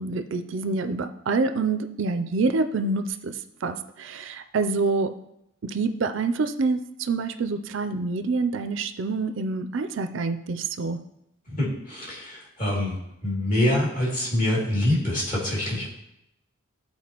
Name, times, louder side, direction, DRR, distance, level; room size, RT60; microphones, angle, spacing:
voice 1, 0.0-3.3 3.6-5.1 5.6-11.0, right 3 dB, 60° right, 8 dB, 0.4 m, -26 dB
voice 2, 11.6-12.9 13.2-15.9, left 1 dB, 40° left, -6 dB, 2.5 m, -25 dB
13.0 x 4.4 x 2.9 m, 0.83 s
head